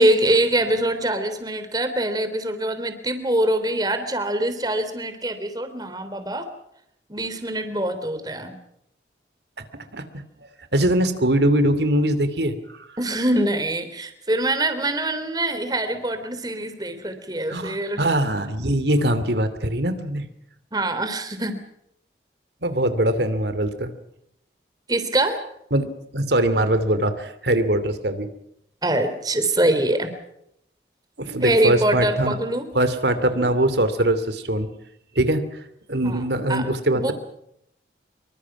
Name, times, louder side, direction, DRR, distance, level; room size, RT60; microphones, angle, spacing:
voice 1, 0.0-6.5 7.1-8.5 13.0-18.0 20.7-21.6 24.9-25.4 28.8-30.1 31.4-32.7 36.0-36.2 36.5-36.6 36.9-37.1, right 1 dB, 20° right, 9 dB, 3.3 m, -23 dB
voice 2, 9.9-10.2 10.7-12.9 17.5-20.3 22.6-23.9 25.7-28.3 31.2-32.4 32.7-34.7 35.1-35.6 35.9-37.1, right 1 dB, 75° right, 11 dB, 2.7 m, -22 dB
26.0 x 24.0 x 6.1 m, 0.75 s
head